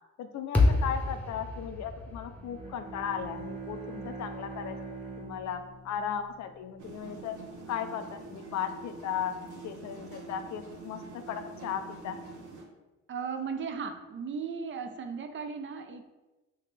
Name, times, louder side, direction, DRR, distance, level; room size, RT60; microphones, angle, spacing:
voice 1, 0.2-4.8 5.2-7.3 7.7-9.4 9.6-11.0 11.3-12.2, left 8 dB, 65° left, 8 dB, 0.4 m, -36 dB
sound 1, 0.5-4.8, left 3 dB, 5° left, 0.8 m, -30 dB
Bowed string instrument, 2.3-6.9, right 4 dB, 20° right, 1.0 m, -43 dB
sound 2, 6.8-12.6, right 3 dB, 75° right, 0.8 m, -45 dB
voice 2, 13.1-16.0, right 5 dB, 40° right, 7 dB, 0.4 m, -36 dB
3.4 x 2.8 x 3.2 m, 1.1 s
cardioid pair, 90°, 30 cm